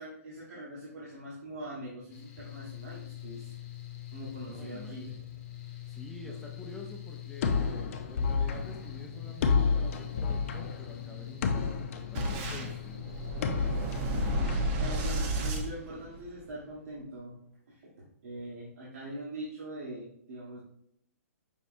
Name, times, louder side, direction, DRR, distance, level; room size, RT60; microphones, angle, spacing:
voice 1, 0.0-3.5 4.1-5.2 5.6-5.8 6.2-6.4 14.8-17.4 17.7-20.6, right 1 dB, 70° right, -6 dB, 1.3 m, -42 dB
Mechanical fan, 2.1-14.7, left 14 dB, 25° left, 1.3 m, -44 dB
voice 2, 4.5-5.1 5.9-13.9, left 1 dB, 5° left, -1 dB, 0.5 m, -48 dB
sound 1, 7.4-15.3, left 5 dB, 55° left, 0.6 m, -31 dB
Boom, 12.1-16.5, right 1 dB, 35° right, 0.9 m, -33 dB
5.5 x 3.0 x 2.6 m, 0.68 s
hypercardioid pair, 145°, 9 cm